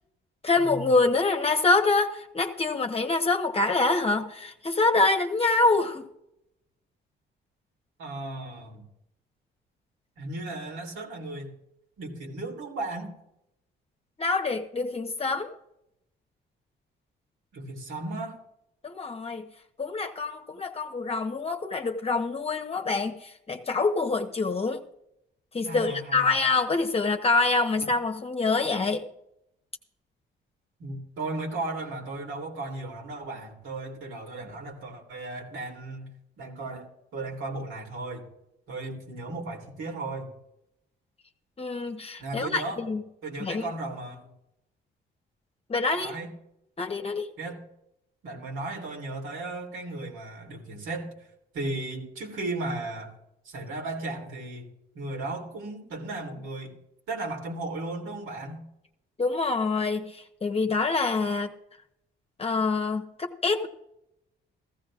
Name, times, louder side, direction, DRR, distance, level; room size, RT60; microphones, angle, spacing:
voice 1, 0.4-6.1 14.2-15.5 18.8-19.5 19.8-24.8 25.5-29.0 41.6-43.0 43.4-43.7 45.7-46.1 46.8-47.3 59.2-61.5 62.4-63.7, left 3 dB, 30° left, 5 dB, 1.0 m, -26 dB
voice 2, 8.0-8.9 10.2-11.5 12.0-13.1 17.5-18.4 25.6-26.3 30.8-36.1 36.4-38.3 38.7-40.3 42.2-42.8 43.2-44.3 45.9-46.3 47.4-47.6 48.2-51.1 51.5-53.1 53.4-54.7 54.9-56.7 57.1-58.6, right 2 dB, 80° right, 1 dB, 3.0 m, -35 dB
15.5 x 14.5 x 2.5 m, 0.83 s
cardioid pair, 90°, 20 cm